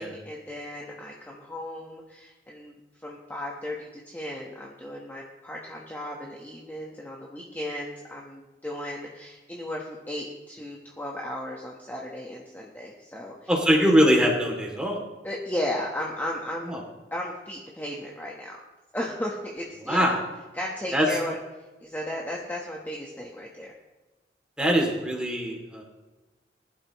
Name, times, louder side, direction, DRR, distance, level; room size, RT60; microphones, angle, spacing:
voice 1, 0.0-13.5 15.2-16.8 17.1-18.6 18.9-20.2 20.5-23.7, left 1 dB, 10° left, -2 dB, 1.3 m, -35 dB
voice 2, 13.5-15.0 16.7-16.8 19.8-20.1 20.9-21.1 24.6-25.8, equal, 5° right, -1 dB, 2.8 m, -22 dB
20.5 x 11.5 x 3.1 m, 1.2 s
head